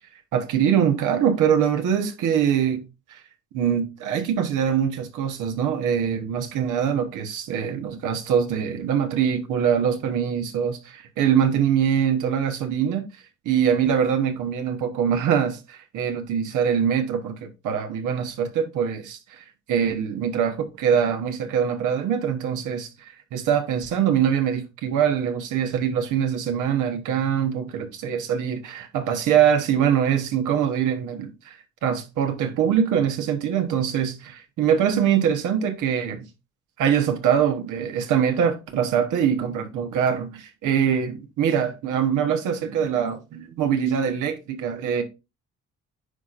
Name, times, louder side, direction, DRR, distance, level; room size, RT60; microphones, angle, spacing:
voice 1, 0.3-2.8 3.1-3.2 3.5-13.1 13.4-36.3 36.8-45.0, right 8 dB, 85° right, 1.2 m, -23 dB
9.6 x 4.2 x 2.5 m
cardioid pair, 90°, 30 cm